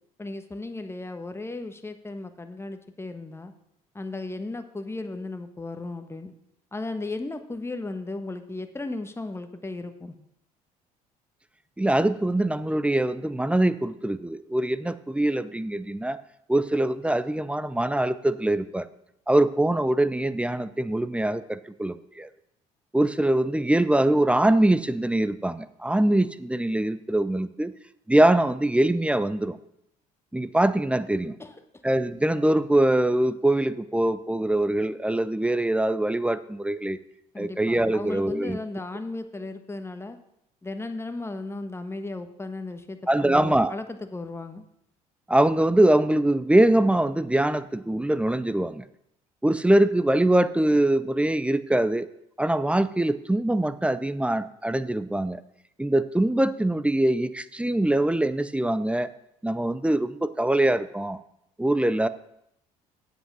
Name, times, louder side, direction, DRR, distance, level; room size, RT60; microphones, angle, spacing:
voice 1, 0.2-3.5 3.9-6.3 6.7-10.2 31.4-31.6 37.3-40.2 40.6-44.6, left 2 dB, 15° left, 8 dB, 1.2 m, -35 dB
voice 2, 11.8-16.2 16.5-18.9 19.3-22.3 22.9-27.7 28.1-29.6 30.3-31.4 31.8-37.0 37.4-38.6 43.1-43.7 45.3-48.8 49.4-52.1 52.4-55.4 55.8-59.1 59.4-61.2 61.6-62.1, right 1 dB, 5° right, 14 dB, 0.6 m, -23 dB
8.0 x 8.0 x 6.2 m, 0.78 s
hypercardioid pair, 65°, 18 cm